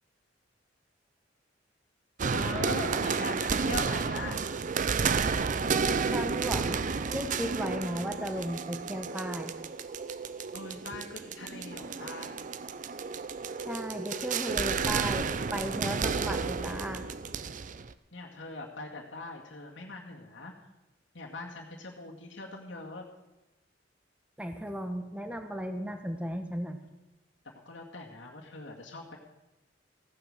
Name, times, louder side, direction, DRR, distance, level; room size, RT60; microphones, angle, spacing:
sound 1, 2.2-17.9, right 5 dB, 45° right, 0.5 m, -31 dB
voice 1, 2.3-4.4 10.5-12.4 18.1-20.5 21.1-23.1 27.4-29.2, left 3 dB, 75° left, -2 dB, 2.0 m, -41 dB
voice 2, 6.1-6.8 7.1-9.5 13.6-17.0 24.4-26.8, equal, 5° right, 7 dB, 1.1 m, -35 dB
15.5 x 8.8 x 6.6 m, 0.99 s
head